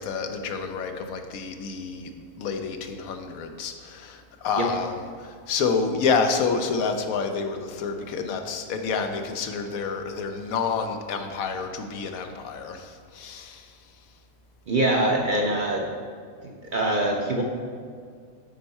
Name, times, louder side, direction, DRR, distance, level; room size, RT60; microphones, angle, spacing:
voice 1, 0.0-2.1 2.4-4.9 5.2-13.7, left 5 dB, 85° left, 6 dB, 1.1 m, -28 dB
voice 2, 14.7-15.9 16.4-17.4, right 1 dB, 50° right, 0 dB, 0.6 m, -24 dB
9.1 x 4.4 x 4.2 m, 2.1 s
omnidirectional pair, 1.4 m